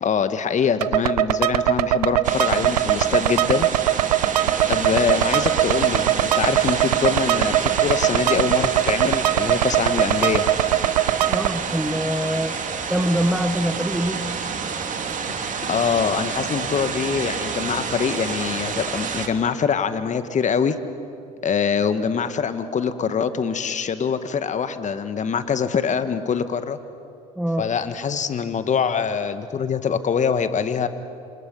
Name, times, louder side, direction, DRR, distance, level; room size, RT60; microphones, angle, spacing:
voice 1, 0.0-3.7 4.7-10.4 15.7-20.8 21.4-26.8 27.6-30.9, left 6 dB, 40° left, 11 dB, 1.6 m, -24 dB
sound 1, 0.8-11.5, right 13 dB, 85° right, 0.6 m, -21 dB
sound 2, 2.2-19.3, right 5 dB, 40° right, 2.8 m, -28 dB
voice 2, 11.2-12.6 12.9-14.2 27.4-27.7, equal, 5° right, 5 dB, 1.6 m, -24 dB
29.0 x 27.0 x 5.5 m, 2.5 s
hypercardioid pair, 60°, 20 cm